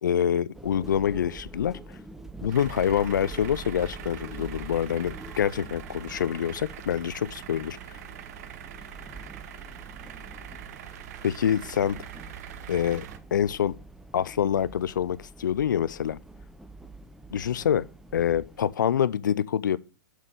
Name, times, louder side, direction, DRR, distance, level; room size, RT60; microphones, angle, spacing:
voice 1, 0.0-2.0 2.4-7.8 11.2-12.0 12.7-13.0 13.3-13.7 14.1-16.2 17.3-17.8 18.1-19.8, left 9 dB, 75° left, 0.5 m, -26 dB
sound 1, 0.5-18.7, right 1 dB, 5° right, 0.7 m, -45 dB
sound 2, 2.5-13.2, right 11 dB, 55° right, 0.9 m, -43 dB
7.5 x 6.6 x 5.2 m
hypercardioid pair, 110°, 10 cm